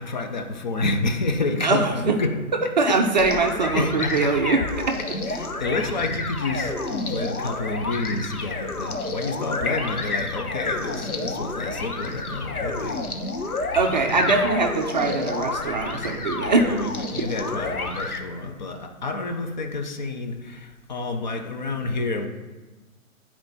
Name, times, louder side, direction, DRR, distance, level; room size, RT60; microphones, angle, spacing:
voice 1, 0.0-2.4 2.8-3.4 3.7-4.3 5.3-13.0 16.7-22.3, left 3 dB, 35° left, 0.6 m, -29 dB
voice 2, 1.6-2.2 2.6-5.0 13.7-16.8 17.2-17.3, right 3 dB, 30° right, 0.5 m, -22 dB
sound 1, 3.2-18.2, left 3 dB, 85° left, 1.0 m, -30 dB
9.7 x 4.3 x 4.2 m
figure-of-eight pair, 130°, 43 cm